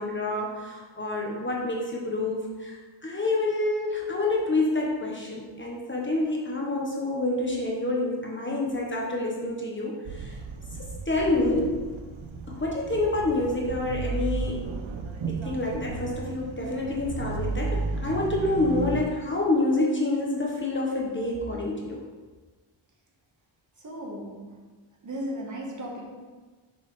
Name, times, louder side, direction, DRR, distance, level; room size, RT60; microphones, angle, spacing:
voice 1, 0.0-10.3 11.1-11.8 12.5-14.7 15.3-22.0, left 2 dB, 25° left, -2 dB, 1.1 m, -27 dB
sound 1, 10.0-19.0, right 4 dB, 70° right, 0.7 m, -34 dB
voice 2, 23.8-24.6 25.0-26.1, equal, 40° right, -1 dB, 1.2 m, -36 dB
7.0 x 5.5 x 3.2 m, 1.4 s
wide cardioid pair, 135°, 48 cm